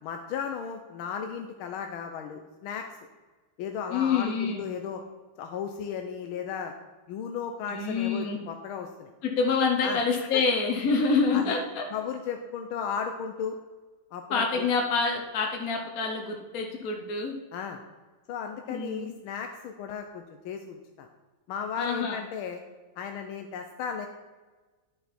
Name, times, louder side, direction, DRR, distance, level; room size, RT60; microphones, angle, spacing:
voice 1, 0.0-2.9 3.6-5.0 5.4-6.7 7.1-9.1 9.8-10.0 10.3-10.4 11.3-11.6 11.9-13.6 14.1-14.7 17.5-17.8 18.3-21.1 21.5-22.6 23.0-24.1, left 7 dB, 90° left, 5 dB, 1.6 m, -35 dB
voice 2, 3.9-4.6 7.7-8.4 9.2-11.8 14.3-17.3 18.7-19.1 21.8-22.2, left 4 dB, 50° left, 1 dB, 1.3 m, -27 dB
11.0 x 6.9 x 4.3 m, 1.3 s
omnidirectional pair, 2.2 m